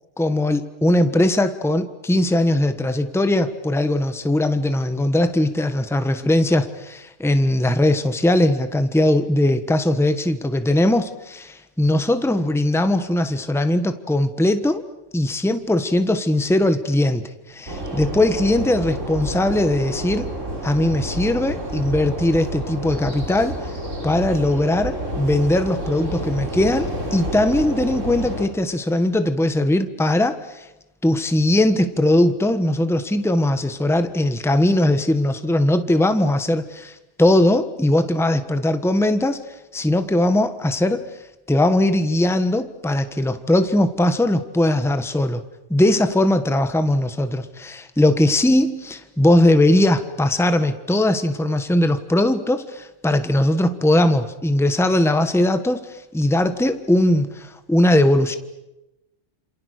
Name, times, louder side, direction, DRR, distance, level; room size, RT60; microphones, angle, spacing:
voice 1, 0.2-14.8 15.1-17.2 17.5-20.3 20.6-23.6 24.0-30.7 31.0-39.4 39.7-41.1 41.5-45.4 45.7-58.4, left 1 dB, ahead, 9 dB, 1.3 m, -20 dB
sound 1, 17.7-28.5, right 1 dB, 85° right, 4.7 m, -29 dB
29.0 x 27.5 x 6.6 m, 0.97 s
omnidirectional pair, 1.3 m